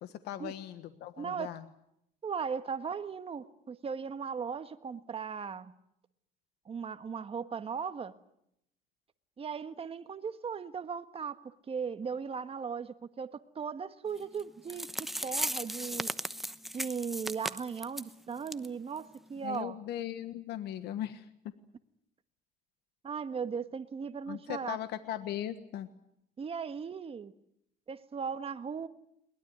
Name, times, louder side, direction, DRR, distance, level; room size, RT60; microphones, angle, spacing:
voice 1, 0.0-1.6 19.4-21.3 24.3-25.9, left 11 dB, 80° left, 10 dB, 1.4 m, -38 dB
voice 2, 1.2-1.5 2.2-5.7 6.6-8.1 9.4-16.1 16.7-19.7 23.0-24.8 26.4-27.3 27.9-28.9, right 6 dB, 35° right, 10 dB, 1.5 m, -37 dB
sound 1, 14.4-14.5 14.7-18.1 18.5-18.7 19.0-19.1 19.5-19.6, equal, ahead, 0.9 m, -36 dB
22.0 x 20.5 x 9.5 m, 0.77 s
cardioid pair, 110°, 17 cm